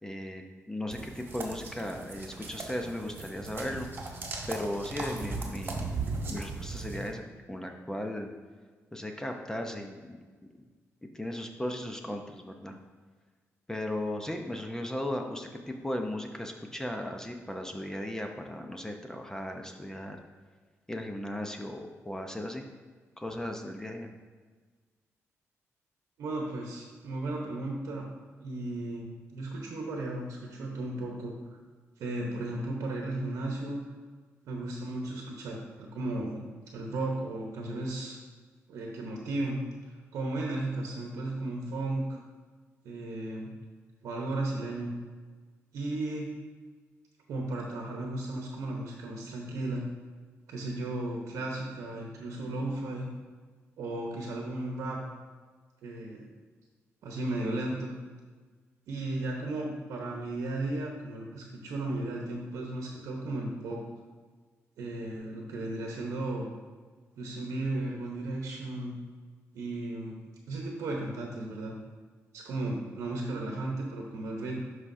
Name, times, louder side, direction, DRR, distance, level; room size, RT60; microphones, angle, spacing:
voice 1, 0.0-3.9 4.5-6.0 6.3-7.2 7.5-8.3 8.9-10.2 11.0-12.8 13.7-20.2 20.9-22.6 23.2-24.1, left 1 dB, 10° left, 3 dB, 0.7 m, -36 dB
sound 1, 0.9-7.1, right 3 dB, 45° right, 1.4 m, -38 dB
voice 2, 26.2-28.1 28.4-29.1 29.3-31.6 32.0-33.8 34.5-36.4 36.7-38.2 38.7-39.6 40.1-42.2 42.8-43.5 44.0-44.9 45.7-46.3 47.3-49.8 50.5-53.1 53.8-55.0 55.8-56.2 57.0-57.9 58.9-63.8 64.8-66.5 67.2-69.0 69.5-70.2 70.5-71.7 72.3-74.6, right 2 dB, 90° right, 0 dB, 1.0 m, -35 dB
11.5 x 4.9 x 2.7 m, 1.5 s
cardioid pair, 85°, 5 cm